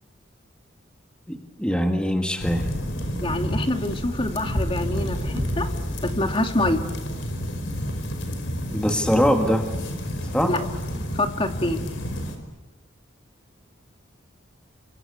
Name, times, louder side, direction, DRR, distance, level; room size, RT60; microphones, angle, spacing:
voice 1, 1.3-2.7 8.7-9.7 10.3-10.6, equal, 5° left, 4 dB, 1.7 m, -22 dB
sound 1, 2.4-12.3, equal, 70° left, 5.0 m, -30 dB
voice 2, 3.2-5.7 6.0-6.8 10.4-10.6 11.1-11.9, left 1 dB, 30° left, 6 dB, 2.2 m, -26 dB
sound 2, 4.4-7.0, equal, 30° right, 4.0 m, -33 dB
29.0 x 25.0 x 8.2 m, 1.1 s
head